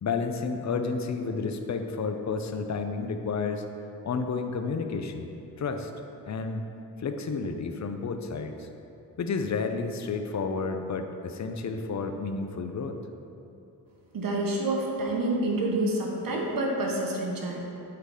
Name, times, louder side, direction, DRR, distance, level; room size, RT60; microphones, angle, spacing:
voice 1, 0.0-3.7 4.0-5.9 6.3-6.7 7.0-8.7 9.2-13.0, left 4 dB, 45° left, 6 dB, 0.6 m, -31 dB
voice 2, 14.1-17.6, right 2 dB, 60° right, -1 dB, 1.2 m, -28 dB
8.3 x 4.0 x 4.9 m, 2.9 s
cardioid pair, 80°, 38 cm